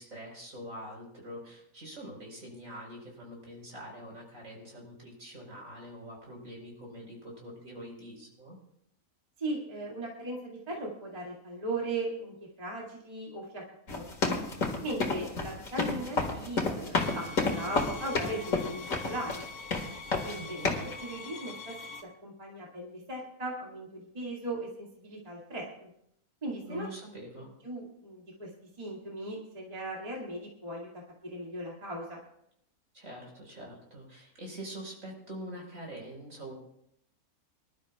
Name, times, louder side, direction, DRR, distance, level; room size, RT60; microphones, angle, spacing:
voice 1, 0.0-8.6 20.3-20.7 26.6-27.5 32.9-36.5, equal, 60° right, -1 dB, 4.7 m, -44 dB
voice 2, 9.4-13.6 13.9-14.4 14.8-19.5 20.2-20.7 21.0-21.7 22.2-25.9 26.4-26.9 27.6-28.5 28.8-30.9 31.2-32.2, right 1 dB, 25° right, -3 dB, 2.2 m, -38 dB
sound 1, 13.9-19.5 19.7-20.4 20.6-20.9, left 3 dB, 65° left, 2.3 m, -30 dB
sound 2, 17.0-22.0, left 4 dB, 85° left, 1.4 m, -44 dB
25.0 x 12.5 x 2.3 m, 0.75 s
omnidirectional pair, 1.5 m